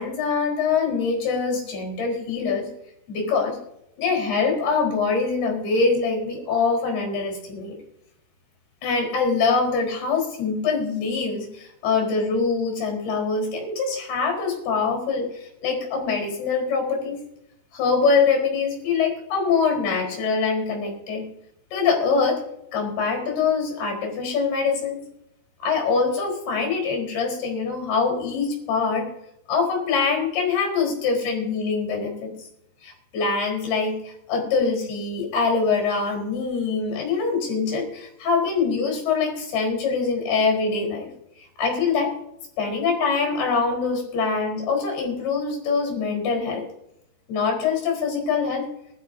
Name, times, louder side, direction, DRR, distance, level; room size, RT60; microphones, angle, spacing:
voice 1, 0.0-2.7 3.1-3.6 4.0-7.8 8.8-17.2 17.7-21.3 21.7-22.4 22.7-25.0 25.6-29.1 29.5-32.3 32.8-41.1 41.6-42.2 42.6-46.7 47.3-48.7, left 4 dB, 65° left, 0 dB, 6.2 m, -24 dB
23.0 x 13.0 x 2.7 m, 0.80 s
omnidirectional pair, 5.0 m